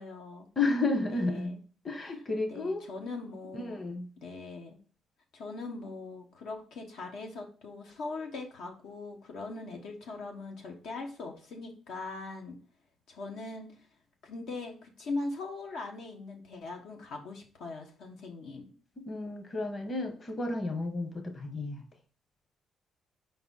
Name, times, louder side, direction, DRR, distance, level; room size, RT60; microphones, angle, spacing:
voice 1, 0.0-0.5 1.1-1.6 2.5-3.8 4.2-4.8 5.3-12.6 13.1-13.7 14.2-18.7, left 3 dB, 80° left, 2 dB, 1.2 m, -40 dB
voice 2, 0.6-1.6 1.8-2.8 3.5-4.1 19.0-21.8, left 2 dB, 35° left, 5 dB, 1.2 m, -32 dB
4.9 x 3.9 x 5.5 m, 0.41 s
cardioid pair, 90°, 0 cm